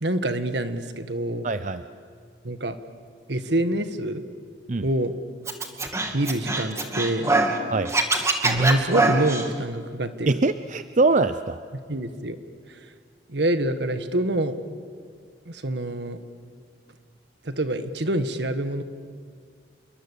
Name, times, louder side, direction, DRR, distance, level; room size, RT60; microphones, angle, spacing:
voice 1, 0.0-1.4 2.4-2.8 3.3-4.2 4.8-5.1 6.1-7.3 8.4-10.4 11.9-12.4 13.3-14.6 15.5-16.2 17.4-18.8, right 1 dB, 70° right, 9 dB, 1.7 m, -26 dB
voice 2, 1.4-1.8 4.7-4.9 7.7-7.9 10.3-11.6, right 3 dB, 45° right, 11 dB, 0.6 m, -23 dB
Scratching (performance technique), 5.5-7.6 7.9-9.5, right 2 dB, 15° right, 2.1 m, -23 dB
28.5 x 23.0 x 8.5 m, 2.1 s
head